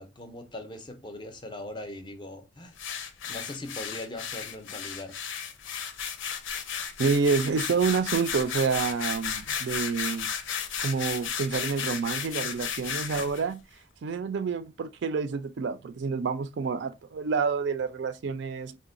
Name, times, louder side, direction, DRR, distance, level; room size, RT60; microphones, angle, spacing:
voice 1, 0.0-2.8 3.3-5.2, left 1 dB, 25° left, 0.4 m, -40 dB
sound 1, 2.8-13.4, left 7 dB, 80° left, 0.5 m, -34 dB
voice 2, 7.0-10.3 10.8-13.6 14.0-18.8, right 5 dB, 65° right, 0.4 m, -28 dB
3.8 x 2.1 x 2.5 m
head